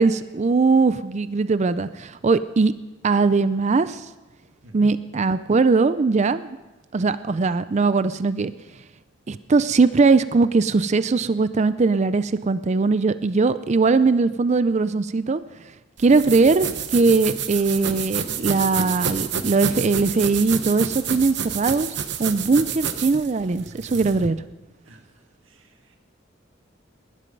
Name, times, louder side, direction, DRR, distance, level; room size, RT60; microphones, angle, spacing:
voice 1, 0.0-2.7 3.0-4.0 4.7-6.6 6.9-8.5 9.3-15.4 16.0-21.9 22.2-24.4, right 4 dB, 35° right, 14 dB, 0.4 m, -20 dB
sound 1, 16.0-24.3, right 7 dB, 60° right, 1.0 m, -29 dB
voice 2, 25.4-26.0, right 2 dB, 85° right, 4 dB, 1.6 m, -44 dB
19.5 x 11.0 x 5.3 m, 1.1 s
head